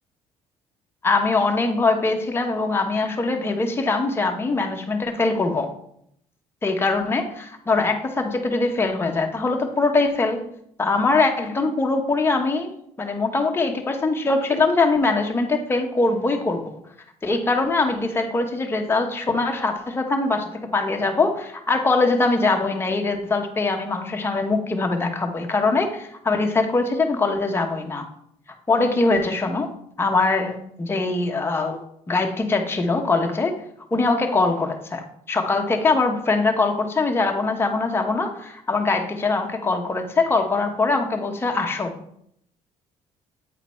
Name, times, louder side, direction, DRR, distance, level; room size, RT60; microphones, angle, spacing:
voice 1, 1.0-5.7 6.6-10.5 10.8-16.7 17.2-28.1 28.7-29.7 30.0-31.8 32.1-33.5 33.9-42.0, left 3 dB, 20° left, 2 dB, 1.0 m, -22 dB
8.4 x 3.9 x 4.3 m, 0.72 s
cardioid pair, 100°, 12 cm